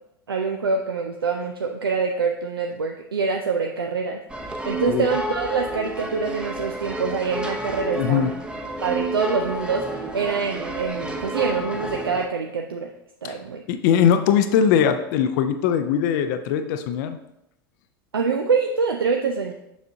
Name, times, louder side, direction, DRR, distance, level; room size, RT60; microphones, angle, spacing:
voice 1, 0.3-8.3 8.8-12.9 13.2-13.6 18.1-19.5, right 5 dB, 80° right, 3 dB, 0.5 m, -25 dB
sound 1, 4.3-12.3, right 1 dB, 10° right, 0.7 m, -30 dB
voice 2, 7.9-8.3 13.2-13.4 13.7-17.2, left 8 dB, 55° left, 9 dB, 0.5 m, -20 dB
7.0 x 6.2 x 2.7 m, 0.83 s
figure-of-eight pair, 80°, 12 cm